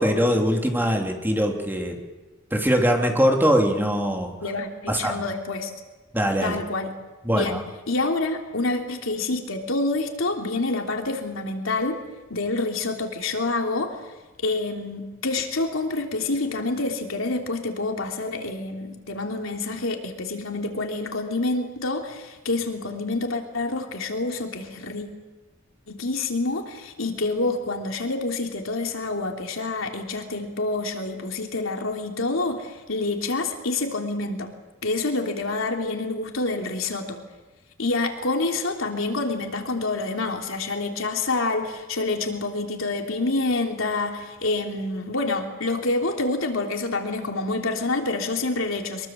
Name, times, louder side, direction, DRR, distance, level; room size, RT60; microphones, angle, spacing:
voice 1, 0.0-2.0 2.5-4.3 4.9-5.2 6.1-6.6 7.2-7.6, equal, 10° right, 2 dB, 3.1 m, -22 dB
voice 2, 4.4-5.7 6.4-6.9 7.3-12.0 12.3-14.0 14.4-25.1 25.9-34.5 34.8-37.2 37.8-49.1, left 2 dB, 85° left, 3 dB, 3.2 m, -27 dB
23.5 x 22.5 x 7.6 m, 1.2 s
head